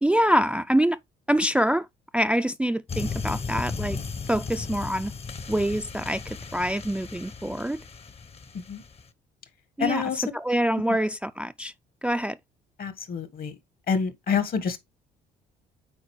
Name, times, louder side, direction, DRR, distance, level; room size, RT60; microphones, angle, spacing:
voice 1, 0.0-1.0 1.3-1.9 2.1-4.0 4.3-5.1 5.5-7.8 9.8-10.0 10.4-11.7 12.0-12.4, equal, 5° right, 0.4 m, -25 dB
sound 1, 2.9-9.1, left 5 dB, 35° left, 0.9 m, -35 dB
voice 2, 9.8-10.3 10.9-11.0 12.8-13.5 13.9-14.8, left 6 dB, 55° left, 1.5 m, -27 dB
8.7 x 4.2 x 3.2 m
supercardioid pair, 65°, 18 cm